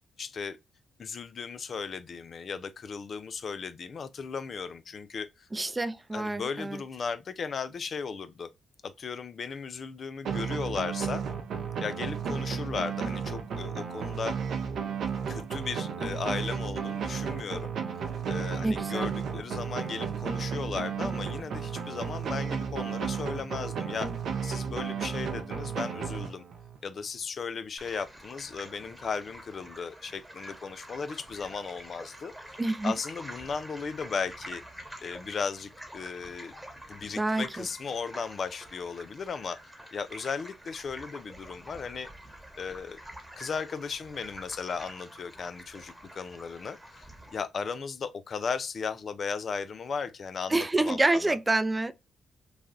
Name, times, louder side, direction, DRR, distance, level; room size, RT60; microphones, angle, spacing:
voice 1, 0.2-0.6 1.0-5.5 6.1-8.5 8.8-11.2 11.8-14.4 15.3-24.1 24.4-26.4 26.8-34.6 35.0-36.5 36.9-42.1 42.6-43.0 43.4-47.1 47.3-51.4, left 5 dB, 60° left, 0.4 m, -36 dB
voice 2, 5.5-6.8 18.6-19.1 32.6-32.9 37.2-37.7 50.5-51.9, right 2 dB, 25° right, 0.4 m, -27 dB
sound 1, 10.2-26.8, right 6 dB, 70° right, 0.6 m, -33 dB
sound 2, 27.8-47.4, equal, 5° right, 1.1 m, -47 dB
3.2 x 2.3 x 2.5 m
supercardioid pair, 45°, 0 cm